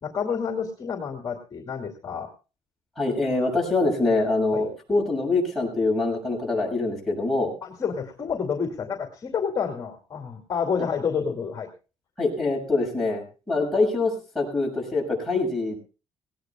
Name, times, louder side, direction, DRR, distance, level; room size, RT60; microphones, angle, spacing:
voice 1, 0.0-2.3 4.5-4.7 7.6-11.7, left 6 dB, 30° left, 3 dB, 2.3 m, -29 dB
voice 2, 3.0-7.5 10.8-10.9 12.2-15.8, left 3 dB, ahead, -2 dB, 6.9 m, -24 dB
18.5 x 18.5 x 2.3 m, 0.32 s
cardioid pair, 140°, 11 cm